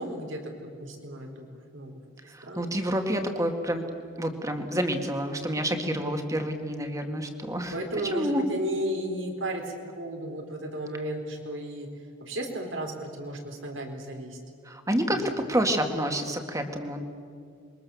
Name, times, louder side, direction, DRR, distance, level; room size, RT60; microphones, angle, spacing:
voice 1, 0.0-1.5 1.7-2.0 2.4-2.7 5.8-6.2 7.7-11.9 12.2-14.4 15.1-15.2, right 1 dB, 80° right, 3 dB, 4.3 m, -34 dB
voice 2, 2.3-3.8 4.2-7.7 8.1-8.4 14.7-15.2 15.5-17.1, right 1 dB, 15° right, 5 dB, 2.1 m, -28 dB
27.0 x 23.0 x 7.2 m, 2.3 s
head